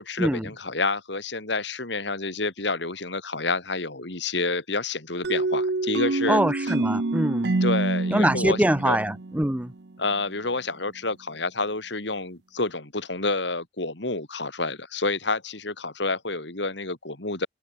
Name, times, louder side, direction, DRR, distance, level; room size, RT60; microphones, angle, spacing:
voice 1, 0.0-6.7 7.6-9.0 10.0-17.5, left 3 dB, 65° left, 3.3 m, -29 dB
sound 1, 5.2-9.9, right 2 dB, 60° right, 0.8 m, -27 dB
voice 2, 6.3-7.5 8.1-9.7, right 1 dB, 5° right, 0.7 m, -23 dB
head